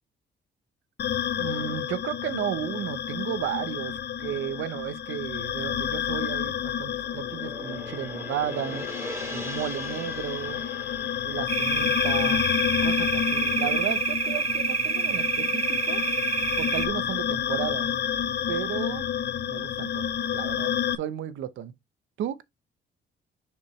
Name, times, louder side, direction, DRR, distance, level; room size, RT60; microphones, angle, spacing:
sound 1, 1.0-21.0, left 9 dB, 60° left, 0.8 m, -30 dB
voice 1, 1.4-8.8 9.3-10.6 11.2-12.4 12.8-16.0 16.6-17.9 18.5-19.0 19.5-20.7 21.0-21.7 22.2-22.4, right 10 dB, 80° right, 0.9 m, -33 dB
Gong, 6.5-14.9, right 1 dB, 15° right, 2.9 m, -42 dB
sound 2, 11.5-16.9, right 5 dB, 30° right, 1.1 m, -27 dB
6.9 x 5.1 x 3.2 m
cardioid pair, 90°, 20 cm